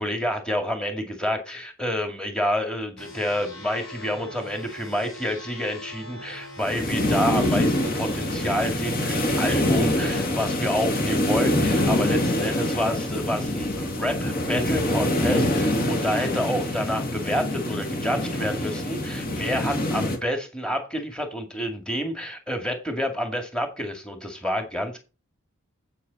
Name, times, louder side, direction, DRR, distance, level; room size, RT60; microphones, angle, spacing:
voice 1, 0.0-25.0, equal, 5° left, 2.1 m, -28 dB
sound 1, 3.0-8.7, left 1 dB, 80° left, 6.7 m, -42 dB
sound 2, 6.6-20.2, left 1 dB, 45° left, 2.2 m, -25 dB
8.4 x 8.4 x 4.1 m
head